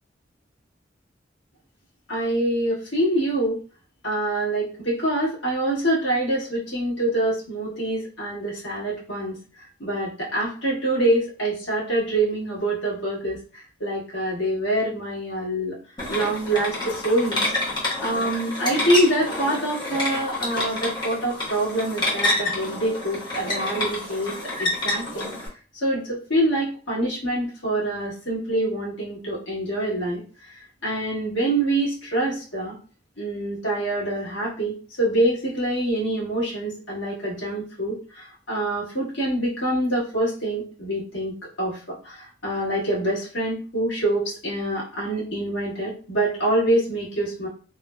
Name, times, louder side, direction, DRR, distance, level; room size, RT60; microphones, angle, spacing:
voice 1, 2.1-3.6 4.0-9.4 9.8-15.8 16.1-17.4 18.0-25.3 25.7-30.2 30.5-32.7 33.2-47.5, right 1 dB, 80° left, -6 dB, 1.4 m, -25 dB
sound 1, 16.0-25.5, left 2 dB, 25° left, 0.7 m, -28 dB
3.0 x 2.0 x 2.3 m, 0.39 s
head